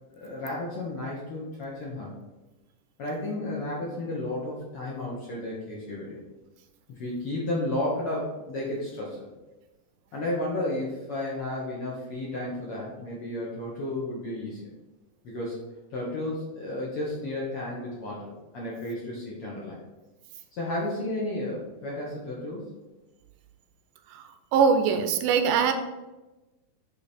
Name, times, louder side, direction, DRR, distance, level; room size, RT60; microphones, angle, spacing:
voice 1, 0.1-2.1 3.0-6.2 6.9-9.3 10.1-14.7 15.2-15.6 15.9-19.8 20.5-22.7, left 1 dB, 65° left, -5 dB, 1.5 m, -33 dB
voice 2, 24.5-25.7, right 6 dB, 80° right, 7 dB, 2.1 m, -22 dB
8.6 x 3.2 x 4.2 m, 1.1 s
omnidirectional pair, 3.9 m